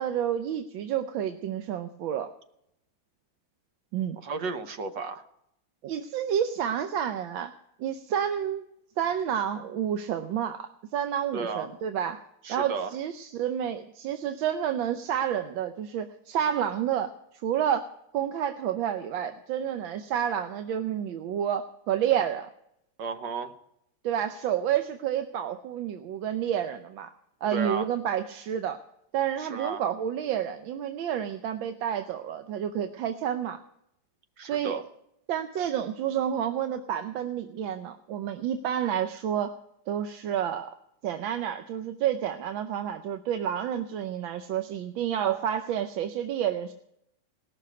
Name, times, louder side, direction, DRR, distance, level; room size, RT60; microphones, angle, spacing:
voice 1, 0.0-2.3 3.9-4.2 5.8-7.5 7.8-8.6 9.0-12.2 12.5-22.5 24.0-27.1 27.4-28.8 29.1-33.6 34.4-34.8 35.3-39.5 39.9-40.7 41.0-46.7, right 9 dB, 90° right, 8 dB, 1.5 m, -29 dB
voice 2, 4.2-5.2 11.3-11.7 12.4-12.9 23.0-23.5 27.5-27.9 29.4-29.8 34.4-34.8, right 4 dB, 70° right, 8 dB, 1.7 m, -33 dB
18.0 x 6.7 x 9.5 m, 0.77 s
omnidirectional pair, 2.1 m